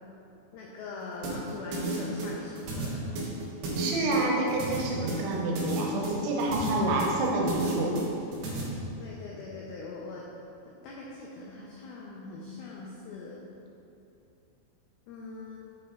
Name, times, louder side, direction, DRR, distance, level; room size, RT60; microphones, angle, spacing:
voice 1, 0.5-3.0 9.0-10.2 10.8-13.4 15.1-15.6, left 3 dB, 85° left, -3 dB, 2.1 m, -42 dB
sound 1, 1.2-8.6, right 2 dB, 65° right, 2.8 m, -33 dB
voice 2, 3.8-8.0, right 2 dB, 85° right, -1 dB, 3.3 m, -28 dB
8.2 x 5.9 x 3.9 m, 2.8 s
omnidirectional pair, 5.3 m